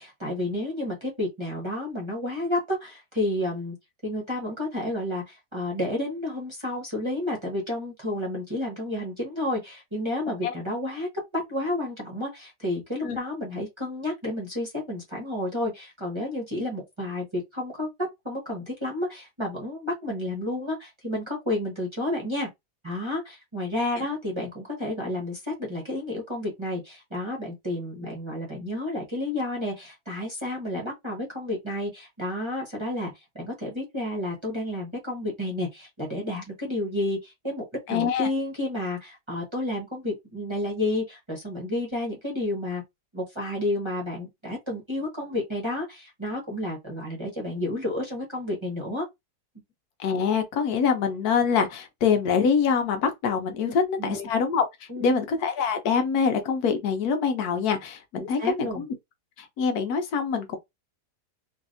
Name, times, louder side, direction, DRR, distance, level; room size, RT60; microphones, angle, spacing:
voice 1, 0.0-3.8 4.0-17.9 18.2-22.5 22.8-42.8 43.1-49.0 54.0-54.3 54.9-55.2 58.2-58.8, left 1 dB, 20° right, 1.0 m, -31 dB
voice 2, 37.9-38.3 50.0-54.6 55.0-58.9 59.4-60.6, left 6 dB, 75° left, 1.2 m, -25 dB
3.2 x 2.7 x 2.6 m
omnidirectional pair, 1.7 m